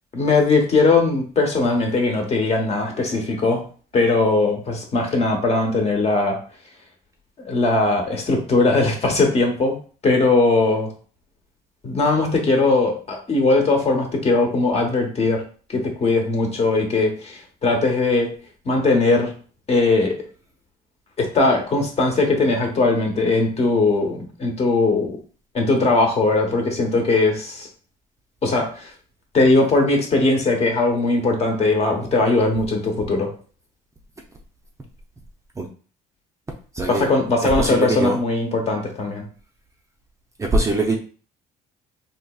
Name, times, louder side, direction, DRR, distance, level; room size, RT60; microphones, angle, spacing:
voice 1, 0.1-3.6 3.9-6.4 7.4-9.7 10.0-10.9 11.8-15.4 15.7-18.3 18.6-19.3 19.7-20.1 21.2-25.2 25.5-27.7 28.4-28.8 29.3-33.3 36.9-39.3, left 3 dB, 40° left, 1 dB, 1.1 m, -19 dB
voice 2, 36.7-37.1 37.4-38.2 40.4-41.0, right 2 dB, 15° right, 1 dB, 0.5 m, -22 dB
4.0 x 2.9 x 2.3 m, 0.40 s
cardioid pair, 110°, 17 cm